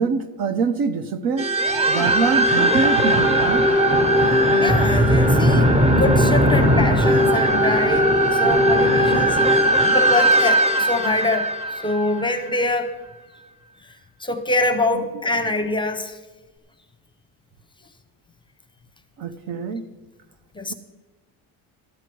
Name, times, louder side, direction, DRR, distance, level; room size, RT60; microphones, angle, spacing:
voice 1, 0.0-1.5 1.9-3.7 14.9-15.0 15.3-15.4 19.2-19.9, right 5 dB, 65° right, 12 dB, 0.9 m, -24 dB
sound 1, 1.4-12.6, equal, 15° right, 0.8 m, -18 dB
voice 2, 4.6-12.9 13.8-13.9 14.2-16.2 20.5-20.7, left 2 dB, 15° left, 8 dB, 0.7 m, -25 dB
13.0 x 9.8 x 4.6 m, 1.2 s
cardioid pair, 145°, 37 cm